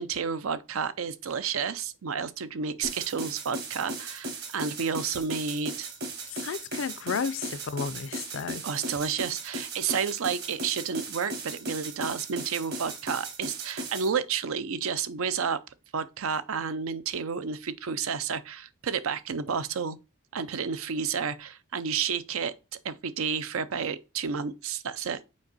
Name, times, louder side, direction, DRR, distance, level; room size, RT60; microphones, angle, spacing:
voice 1, 0.0-5.9 8.6-15.6 15.9-20.0 20.3-22.5 22.8-25.3, right 6 dB, 80° right, 0.5 m, -31 dB
sound 1, 2.8-14.1, right 2 dB, 50° right, 1.4 m, -37 dB
voice 2, 6.3-8.6, left 6 dB, 65° left, 0.4 m, -33 dB
5.3 x 4.5 x 4.0 m
head